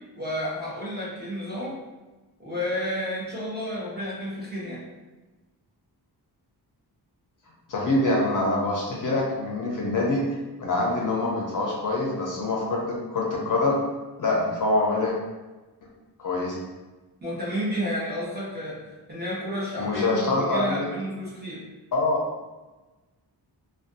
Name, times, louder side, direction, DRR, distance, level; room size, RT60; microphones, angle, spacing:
voice 1, 0.2-1.7 2.4-4.8 17.2-18.8 19.1-21.6, equal, 25° right, -7 dB, 0.9 m, -31 dB
voice 2, 7.7-10.2 10.6-13.8 14.2-15.2 16.2-16.6 19.8-20.8 21.9-22.2, left 2 dB, 50° left, -3 dB, 0.5 m, -25 dB
2.5 x 2.3 x 2.5 m, 1.2 s
wide cardioid pair, 115°, 41 cm